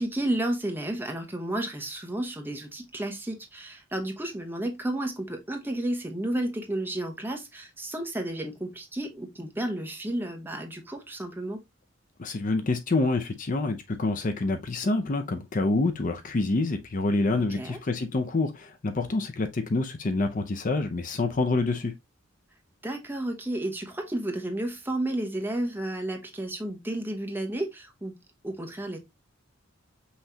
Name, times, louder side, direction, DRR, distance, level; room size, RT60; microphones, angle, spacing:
voice 1, 0.0-11.6 17.3-17.8 22.8-28.2 28.4-29.0, right 1 dB, 10° right, 0.9 m, -32 dB
voice 2, 12.2-21.9, left 2 dB, 40° left, 0.6 m, -27 dB
5.6 x 3.1 x 2.7 m
head